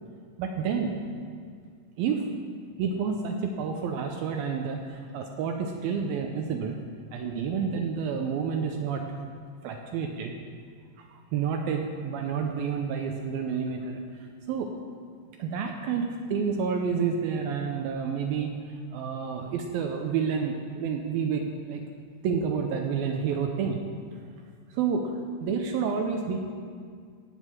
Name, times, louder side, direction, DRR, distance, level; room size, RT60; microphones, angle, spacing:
voice 1, 0.4-1.0 2.0-2.3 2.8-6.8 7.1-9.0 9.6-10.3 11.0-14.7 15.4-21.8 22.2-23.8 24.7-25.1 25.4-26.4, right 6 dB, 85° right, 3 dB, 2.1 m, -29 dB
16.0 x 5.4 x 7.5 m, 2.1 s
omnidirectional pair, 5.1 m